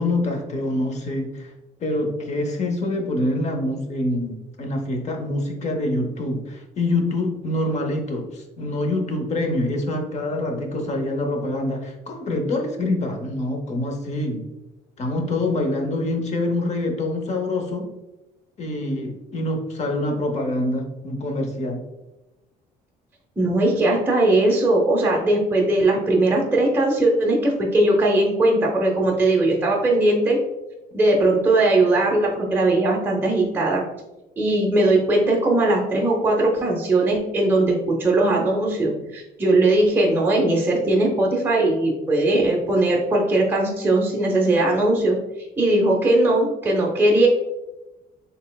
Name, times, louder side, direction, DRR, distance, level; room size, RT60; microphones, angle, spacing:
voice 1, 0.0-1.5 1.8-14.4 15.0-17.9 18.6-21.8, left 1 dB, 40° left, 3 dB, 0.8 m, -25 dB
voice 2, 23.4-30.4 30.9-33.8 34.4-45.2 45.6-47.3, right 2 dB, 10° right, -1 dB, 0.6 m, -19 dB
4.2 x 3.4 x 2.2 m, 1.0 s
cardioid pair, 110°, 17 cm